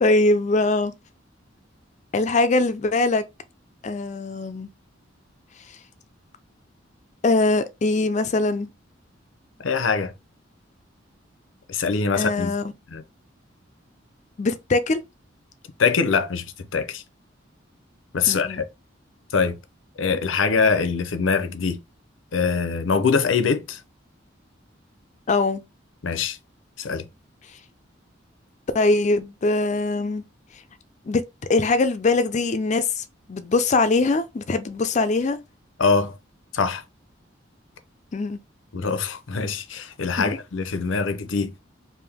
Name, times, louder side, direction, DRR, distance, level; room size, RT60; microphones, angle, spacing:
voice 1, 0.0-0.9 2.1-3.2 3.8-4.7 7.2-8.7 12.1-12.7 14.4-15.0 18.3-18.6 25.3-25.6 28.7-30.2 31.1-31.2 31.5-35.4 38.1-38.4 40.2-40.3, left 3 dB, 40° left, 0.4 m, -22 dB
voice 2, 9.6-10.1 11.7-12.5 12.9-13.0 15.8-17.0 18.1-18.6 19.3-19.6 20.0-21.8 22.3-23.8 26.0-26.4 26.8-27.0 35.8-36.2 36.5-36.8 38.7-41.5, left 5 dB, 90° left, 0.6 m, -23 dB
3.5 x 2.6 x 3.4 m
head